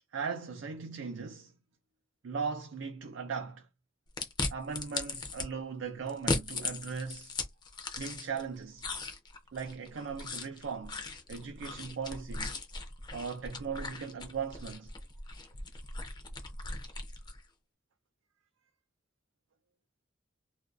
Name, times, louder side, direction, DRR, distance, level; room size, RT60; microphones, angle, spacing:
voice 1, 0.1-1.5 2.2-3.7 4.5-7.4 8.0-8.8 9.5-12.6 13.1-14.9, right 5 dB, 85° right, 0.5 m, -38 dB
sound 1, 4.2-5.5 6.1-8.4 8.8-17.4, left 3 dB, 25° left, 0.5 m, -38 dB
2.5 x 2.2 x 2.4 m
head